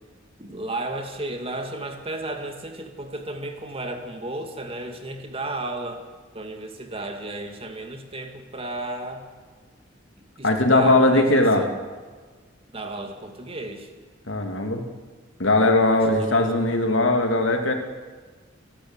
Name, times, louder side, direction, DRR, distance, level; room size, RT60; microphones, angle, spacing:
voice 1, 0.4-6.0 6.3-9.2 10.2-11.7 12.7-13.9 16.1-16.5, right 2 dB, 30° right, 5 dB, 2.2 m, -34 dB
voice 2, 10.4-11.6 14.3-14.9 15.4-17.7, left 2 dB, 75° left, 4 dB, 2.6 m, -19 dB
28.0 x 12.0 x 8.0 m, 1.4 s
head